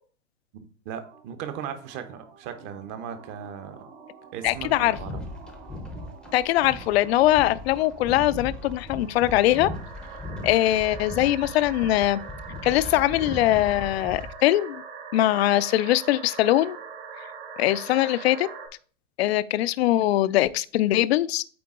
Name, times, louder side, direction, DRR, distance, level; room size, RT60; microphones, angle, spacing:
voice 1, 0.5-3.8 4.3-5.2, right 8 dB, 30° right, 0.9 m, -37 dB
sound 1, 1.0-18.7, right 6 dB, 50° right, 2.0 m, -43 dB
voice 2, 4.4-5.0 6.3-9.7 10.4-12.2 12.6-14.8 15.1-16.8 17.6-18.5 19.2-21.4, left 14 dB, 60° left, 0.5 m, -22 dB
sound 2, 4.4-14.3, left 2 dB, ahead, 0.6 m, -38 dB
8.6 x 3.8 x 3.7 m
hypercardioid pair, 145°, 37 cm